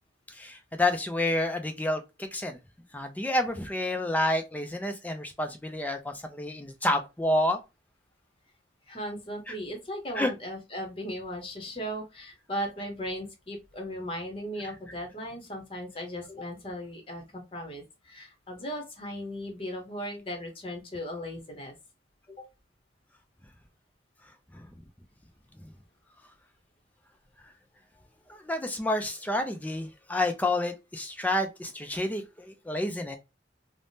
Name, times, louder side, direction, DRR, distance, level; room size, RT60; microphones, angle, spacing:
voice 1, 0.3-2.6 2.9-7.6 9.5-9.6 10.2-10.3 24.5-24.6 28.3-33.2, left 1 dB, 10° left, 0.3 m, -29 dB
voice 2, 8.9-21.7 22.3-22.5, equal, 30° left, 0.8 m, -37 dB
3.4 x 2.0 x 2.6 m
head